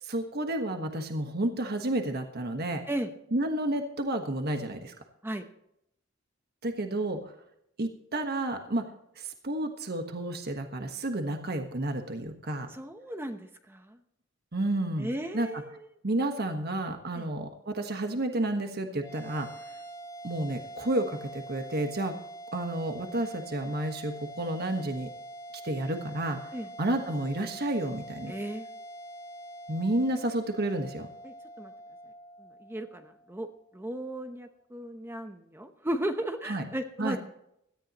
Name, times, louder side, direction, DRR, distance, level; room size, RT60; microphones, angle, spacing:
voice 1, 0.0-2.8 3.3-4.9 6.6-7.3 7.8-8.9 9.2-12.7 14.5-15.6 16.0-19.8 20.2-22.2 22.5-25.1 25.6-28.3 29.7-31.1 36.4-36.7 37.0-37.2, right 1 dB, 50° right, 5 dB, 1.4 m, -31 dB
voice 2, 12.7-14.0 15.0-15.9 17.1-17.3 26.5-26.7 28.3-28.7 31.2-31.7 32.4-33.5 33.7-37.2, right 1 dB, 10° right, 6 dB, 0.9 m, -35 dB
sound 1, 19.0-33.6, right 1 dB, 25° left, 2.7 m, -45 dB
17.5 x 13.5 x 3.0 m, 0.76 s
head